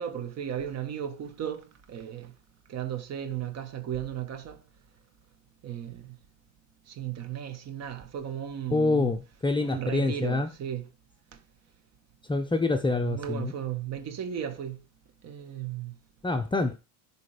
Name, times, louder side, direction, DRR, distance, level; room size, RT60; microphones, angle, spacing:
voice 1, 0.0-2.3 2.7-4.6 5.6-6.2 6.9-9.2 9.6-10.9 12.8-14.8 15.2-15.9, right 9 dB, 40° right, 1.7 m, -35 dB
voice 2, 8.7-10.5 12.3-13.5 16.2-16.8, left 3 dB, 10° left, 0.8 m, -26 dB
11.0 x 5.2 x 5.1 m
supercardioid pair, 115°, 40 cm